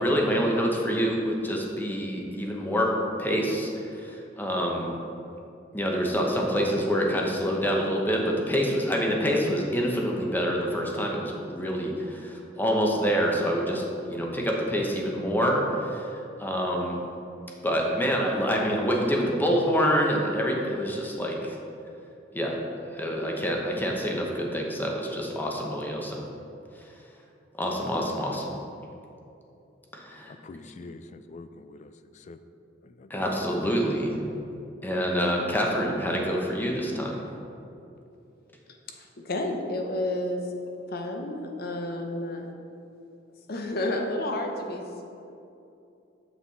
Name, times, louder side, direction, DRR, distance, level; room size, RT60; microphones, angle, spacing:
voice 1, 0.0-2.9 3.2-4.9 5.7-13.8 14.1-17.0 17.6-21.6 22.3-22.6 22.9-26.3 27.5-28.5 29.9-30.9 33.1-34.2 34.8-37.2, equal, 10° left, -1 dB, 0.9 m, -26 dB
voice 2, 30.3-32.4 32.8-33.4, left 3 dB, 40° left, 11 dB, 0.3 m, -46 dB
voice 3, 39.0-40.5 40.9-42.5 43.5-45.0, left 1 dB, 55° left, 3 dB, 0.8 m, -31 dB
7.3 x 5.9 x 4.1 m, 2.7 s
head